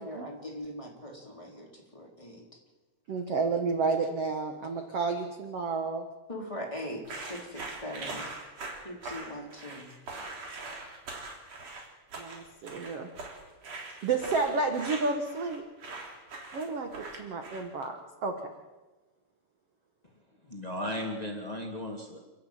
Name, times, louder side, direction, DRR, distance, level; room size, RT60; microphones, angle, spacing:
voice 1, 0.0-2.4 6.3-8.2 8.8-9.9, equal, 10° left, -1 dB, 2.8 m, -41 dB
voice 2, 3.1-6.0 12.2-13.1 14.0-15.6 16.5-18.0 18.2-18.3, right 4 dB, 70° right, 4 dB, 1.4 m, -31 dB
sound 1, 7.0-17.8, right 3 dB, 40° right, 3.9 m, -42 dB
voice 3, 20.4-22.2, left 1 dB, 90° left, 1 dB, 0.3 m, -35 dB
29.0 x 11.5 x 9.0 m, 1.2 s
omnidirectional pair, 5.1 m